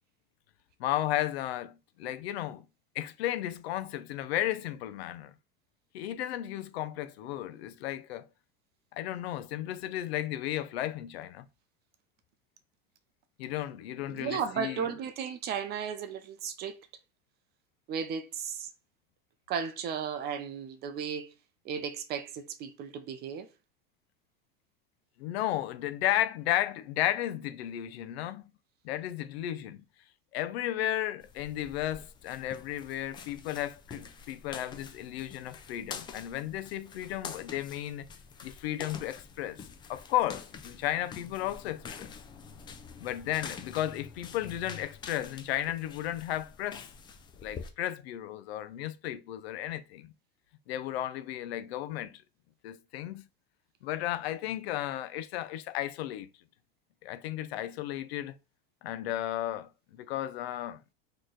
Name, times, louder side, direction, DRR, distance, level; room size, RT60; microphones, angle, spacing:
voice 1, 0.8-2.7 2.9-5.3 5.9-8.3 8.9-11.5 13.4-14.9 25.2-28.4 28.8-29.8 30.3-38.1 38.4-39.6 39.9-42.1 43.0-46.8 47.4-50.1 50.7-52.2 52.6-53.3 53.8-56.3 57.0-58.4 58.8-60.8, left 13 dB, 85° left, 0.7 m, -34 dB
voice 2, 14.1-16.8 17.9-18.7 19.5-21.3 21.6-23.5, right 7 dB, 35° right, 0.6 m, -35 dB
sound 1, 31.2-47.7, left 6 dB, 15° left, 0.3 m, -46 dB
4.3 x 3.2 x 3.8 m
supercardioid pair, 150°, 30 cm